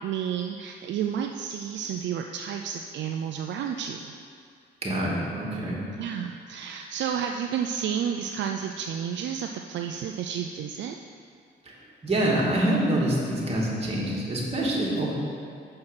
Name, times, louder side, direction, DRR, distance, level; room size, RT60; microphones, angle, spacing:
voice 1, 0.0-4.1 6.0-10.9, right 8 dB, 65° right, 3 dB, 0.4 m, -31 dB
voice 2, 4.8-5.8 11.7-11.8 12.0-15.1, right 1 dB, 30° right, -5 dB, 2.2 m, -26 dB
6.5 x 6.1 x 5.7 m, 2.3 s
cardioid pair, 90°, 20 cm